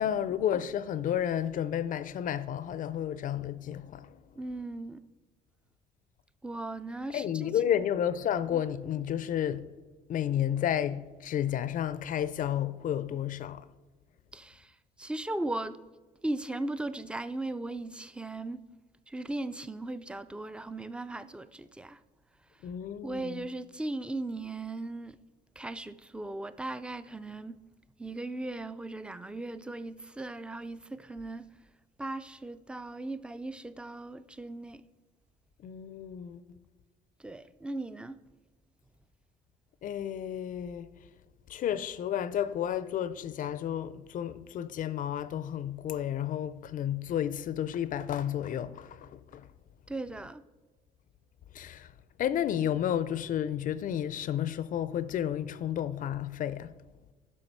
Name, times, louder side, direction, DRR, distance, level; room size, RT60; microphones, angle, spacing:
voice 1, 0.0-4.2 7.1-9.7 10.1-13.7 22.6-23.5 35.6-36.6 39.8-40.9 41.5-49.5 51.5-51.9 52.2-56.8, left 10 dB, 55° left, 0.5 m, -31 dB
voice 2, 4.4-5.0 6.4-7.5 8.5-8.6 14.3-15.8 16.2-18.6 19.1-22.0 23.0-25.2 25.6-27.6 28.0-31.5 32.0-34.8 37.2-38.2 49.9-50.4, right 2 dB, 5° right, 0.4 m, -37 dB
10.5 x 6.1 x 4.5 m
cardioid pair, 110°, 17 cm